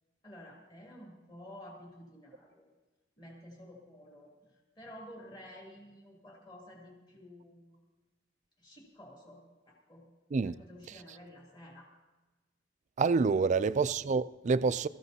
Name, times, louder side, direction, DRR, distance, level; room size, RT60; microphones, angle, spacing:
voice 1, 0.2-2.7 3.2-7.8 8.6-10.0 10.4-11.9 13.4-13.6, left 1 dB, 25° left, 2.9 m, -52 dB
voice 2, 13.0-14.9, right 4 dB, 40° right, 0.4 m, -27 dB
22.0 x 14.5 x 2.8 m
head